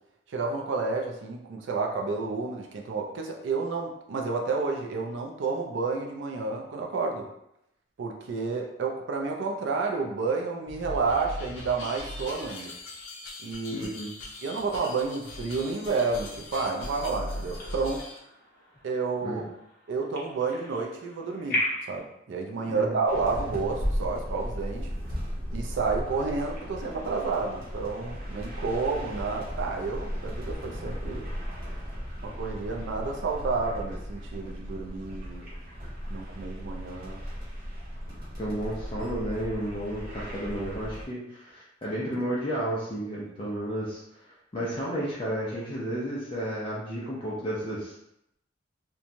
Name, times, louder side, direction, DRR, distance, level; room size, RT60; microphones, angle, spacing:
voice 1, 0.3-7.3 8.0-12.7 13.4-13.9 14.4-18.0 18.8-19.4 19.9-21.6 21.9-24.9 25.5-31.3 32.2-35.5 36.1-37.2, right 4 dB, 70° right, 1 dB, 0.4 m, -30 dB
sound 1, 10.7-18.2, left 1 dB, 80° left, 0.5 m, -40 dB
voice 2, 13.7-14.1 19.2-19.4 22.7-23.0 38.4-47.9, right 1 dB, 25° left, -7 dB, 0.5 m, -32 dB
sound 2, 16.7-22.0, left 1 dB, 50° left, 0.8 m, -37 dB
sound 3, 23.1-41.0, equal, 50° right, 0.9 m, -36 dB
2.9 x 2.2 x 2.5 m, 0.80 s
head